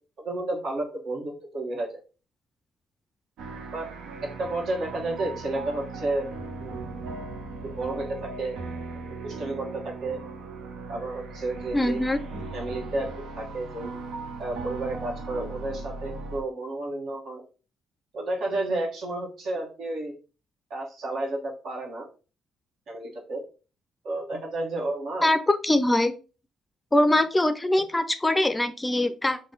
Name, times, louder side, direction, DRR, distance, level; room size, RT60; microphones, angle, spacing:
voice 1, 0.2-2.0 3.7-3.9 4.2-6.3 6.6-6.9 7.6-8.6 9.2-10.2 10.9-12.0 12.5-13.1 13.4-13.9 14.4-17.4 18.1-20.1 20.7-22.1 22.9-23.4 24.0-25.3, right 2 dB, 70° right, -1 dB, 1.3 m, -31 dB
sound 1, 3.4-16.4, right 3 dB, 90° right, 0.7 m, -38 dB
voice 2, 11.7-12.2 25.2-26.1 26.9-29.4, left 1 dB, 15° left, 9 dB, 0.4 m, -22 dB
4.0 x 2.2 x 3.8 m, 0.35 s
cardioid pair, 90°, 0 cm